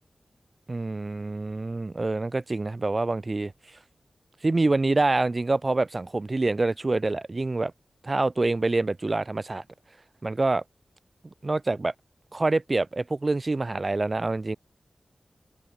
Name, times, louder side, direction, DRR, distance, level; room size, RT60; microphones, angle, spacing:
voice 1, 0.7-3.5 4.4-7.7 8.0-9.6 10.2-10.6 11.4-11.9 12.3-14.6, right 2 dB, 45° right, 3.0 m, -26 dB
cardioid pair, 45°, 0 cm